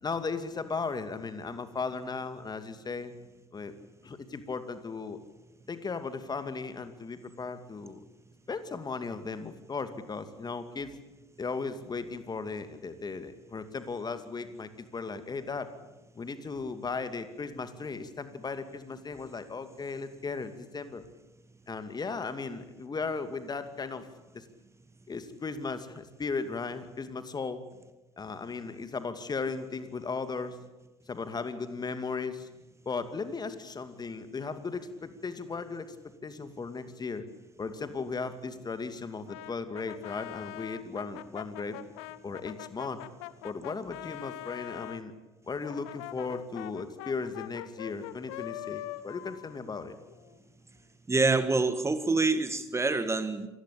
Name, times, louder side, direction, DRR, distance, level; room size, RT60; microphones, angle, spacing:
voice 1, 0.0-3.1 3.5-3.7 4.0-5.2 5.7-8.0 8.5-10.9 11.4-15.7 16.2-21.0 21.7-24.1 24.3-24.4 25.1-27.6 28.2-30.6 31.1-32.5 32.9-36.0 36.2-37.2 37.6-41.8 42.2-43.1 43.4-45.1 45.5-50.0, left 4 dB, 25° left, 10 dB, 2.5 m, -36 dB
Brass instrument, 39.3-45.0 45.6-50.4, left 16 dB, 65° left, 1.2 m, -43 dB
voice 2, 51.1-53.5, right 3 dB, 15° right, 11 dB, 1.7 m, -26 dB
28.0 x 19.5 x 8.7 m, 1.1 s
figure-of-eight pair, 60°, 16 cm